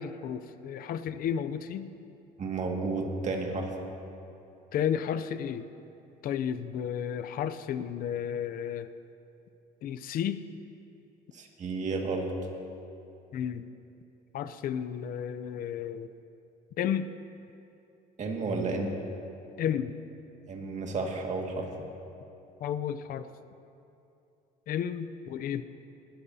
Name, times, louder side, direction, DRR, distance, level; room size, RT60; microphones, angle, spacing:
voice 1, 0.0-1.9 4.7-5.7 6.2-8.9 9.8-10.4 13.3-13.6 14.3-16.1 16.8-17.1 19.6-19.9 22.6-23.3 24.7-25.6, left 9 dB, 60° left, 11 dB, 0.5 m, -32 dB
voice 2, 2.4-3.7 11.3-12.3 18.2-18.9 20.5-21.7, right 3 dB, 45° right, 1 dB, 1.9 m, -32 dB
20.0 x 12.5 x 2.8 m, 2.7 s
cardioid pair, 110°, 17 cm